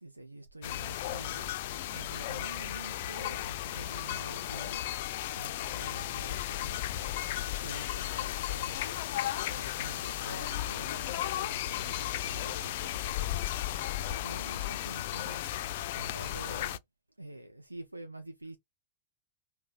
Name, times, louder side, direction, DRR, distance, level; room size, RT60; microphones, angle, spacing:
voice 1, 0.0-4.9 5.3-7.3 7.6-15.4 15.9-16.8 17.2-18.6, right 2 dB, 85° right, 0.5 m, -47 dB
sound 1, 0.6-16.8, left 13 dB, 50° left, 0.4 m, -35 dB
5.2 x 2.1 x 3.9 m
figure-of-eight pair, 95°, 0 cm